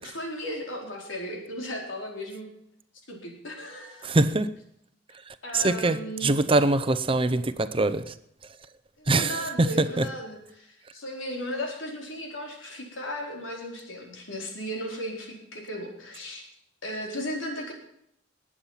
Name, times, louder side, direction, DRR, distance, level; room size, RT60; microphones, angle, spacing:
voice 1, 0.0-2.5 3.1-4.1 5.4-6.4 9.0-16.5 16.8-17.7, equal, 90° left, 0 dB, 4.4 m, -36 dB
voice 2, 4.0-4.5 5.5-6.0 6.2-8.0 9.1-9.3 9.6-9.7 10.0-10.1, right 2 dB, 30° right, 12 dB, 0.7 m, -22 dB
20.0 x 8.7 x 5.7 m, 0.74 s
head